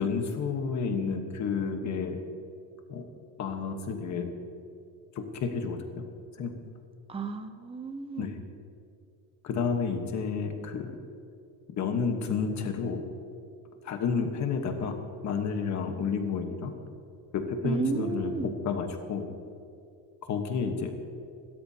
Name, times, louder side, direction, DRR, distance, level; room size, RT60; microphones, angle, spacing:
voice 1, 0.0-2.2 2.9-3.0 3.4-4.3 5.1-5.8 6.4-6.5 8.2-8.3 9.4-10.9 11.7-13.0 13.8-15.0 15.2-16.7 17.3-19.3 20.3-20.9, left 5 dB, 35° left, 5 dB, 1.3 m, -30 dB
voice 2, 7.1-8.3 17.6-18.5, right 4 dB, 10° right, 7 dB, 0.7 m, -33 dB
27.0 x 13.5 x 2.9 m, 2.5 s
cardioid pair, 170°, 46 cm